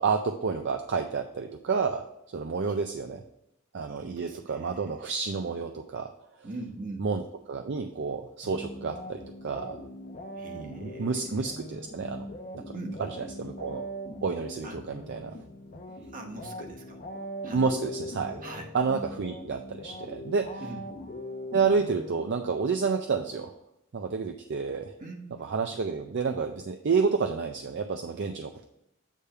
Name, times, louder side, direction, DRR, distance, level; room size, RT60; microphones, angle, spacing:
voice 1, 0.0-3.2 3.7-6.1 7.0-9.8 10.5-12.2 13.0-13.8 14.2-15.3 17.5-18.5 18.7-20.7 21.5-23.5 23.9-24.9 25.4-28.6, right 5 dB, 55° right, 6 dB, 0.5 m, -30 dB
voice 2, 3.8-4.9 6.4-7.1 10.3-11.5 12.7-13.0 14.6-14.8 16.1-17.0 17.4-17.6 18.4-18.7 20.6-20.8 25.0-25.5, right 2 dB, 40° right, 3 dB, 1.1 m, -42 dB
sound 1, 8.4-22.7, equal, 40° left, 0.8 m, -41 dB
8.3 x 3.5 x 5.5 m, 0.81 s
head